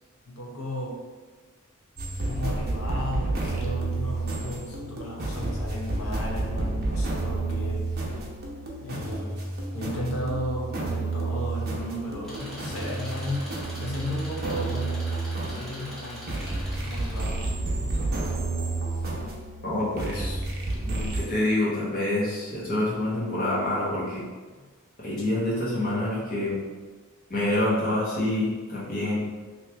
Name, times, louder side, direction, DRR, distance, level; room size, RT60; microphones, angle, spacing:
voice 1, 0.3-1.0 2.2-8.2 8.8-9.5 9.7-15.0 15.5-16.3 16.7-17.5 17.8-18.5 24.5-24.6, left 1 dB, 75° left, -2 dB, 0.8 m, -35 dB
sound 1, 2.0-21.2, right 2 dB, 50° right, 0.7 m, -30 dB
Engine, 12.2-17.2, equal, ahead, 0.9 m, -42 dB
voice 2, 19.6-20.4 20.8-24.2 25.0-26.6 27.3-29.2, left 1 dB, 45° left, -8 dB, 1.2 m, -27 dB
2.9 x 2.9 x 3.4 m, 1.3 s
head